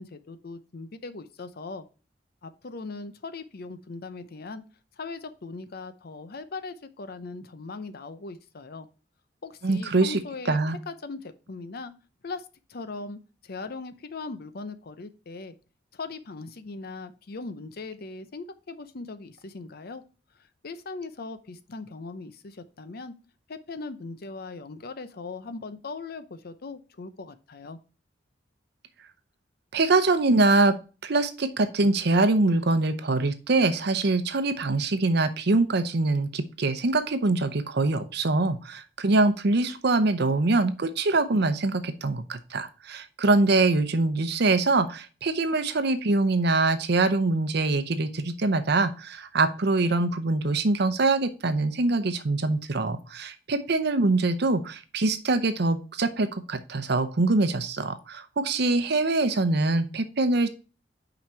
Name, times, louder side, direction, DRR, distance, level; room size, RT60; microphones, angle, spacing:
voice 1, 0.0-1.9 2.4-4.6 5.0-8.9 9.4-10.6 10.9-11.9 12.2-15.6 15.9-20.0 20.6-23.1 23.5-27.8, left 3 dB, 55° left, 11 dB, 0.6 m, -39 dB
voice 2, 9.6-10.2 10.5-10.8 29.7-30.8 31.0-60.5, right 2 dB, 60° right, 11 dB, 0.7 m, -24 dB
6.0 x 5.1 x 4.4 m, 0.34 s
head